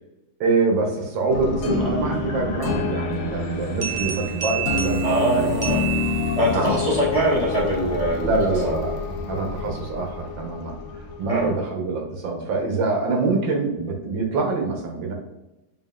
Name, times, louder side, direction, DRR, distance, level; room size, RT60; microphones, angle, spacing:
voice 1, 0.4-5.6 6.5-6.8 8.2-8.9 9.3-15.1, right 3 dB, 85° right, 2 dB, 1.6 m, -25 dB
sound 1, 1.3-11.5, left 3 dB, 90° left, 0.6 m, -28 dB
sound 2, 3.8-6.8, right 11 dB, 50° right, 1.0 m, -30 dB
voice 2, 5.0-5.8 6.4-8.4 8.6-8.7 11.3-11.5, right 1 dB, 40° left, -7 dB, 0.5 m, -22 dB
5.2 x 2.8 x 2.3 m, 0.99 s
omnidirectional pair, 2.0 m